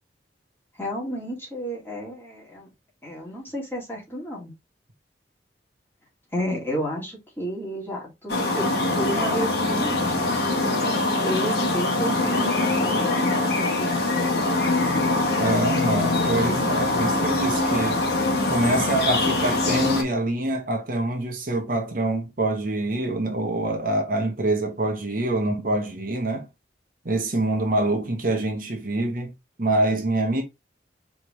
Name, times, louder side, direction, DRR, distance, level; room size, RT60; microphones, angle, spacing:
voice 1, 0.8-2.7 3.0-4.5 6.3-10.3 11.2-14.5, equal, 15° left, 2.2 m, -32 dB
sound 1, 8.3-20.0, left 2 dB, 60° left, 1.3 m, -23 dB
voice 2, 15.4-18.1 18.5-26.5 27.0-29.3 29.6-30.4, right 1 dB, 50° right, 1.1 m, -25 dB
4.7 x 3.4 x 3.2 m
head